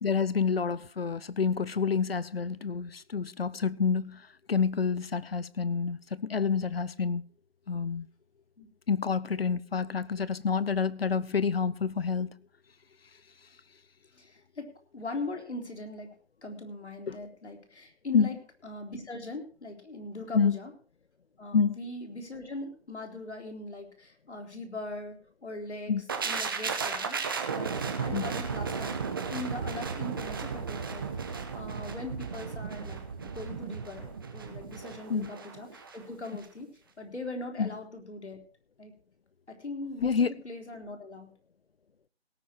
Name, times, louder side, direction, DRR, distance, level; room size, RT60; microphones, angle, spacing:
voice 1, 0.0-7.2 7.7-8.1 8.9-12.3 17.1-17.2 18.1-18.3 20.3-20.6 21.5-21.8 25.9-26.0 28.1-28.3 35.1-35.3 37.6-37.7 40.0-40.3, left 5 dB, 60° left, 0.8 m, -28 dB
voice 2, 14.1-16.1 16.4-18.4 18.6-20.7 21.4-25.2 25.4-25.9 26.2-27.2 27.5-36.7 37.0-38.4 38.8-38.9 39.5-41.3, left 2 dB, 85° left, 3.9 m, -40 dB
sound 1, 26.1-36.0 36.2-36.4, right 5 dB, 20° right, 1.0 m, -35 dB
17.5 x 9.5 x 4.5 m
figure-of-eight pair, 165°, 33 cm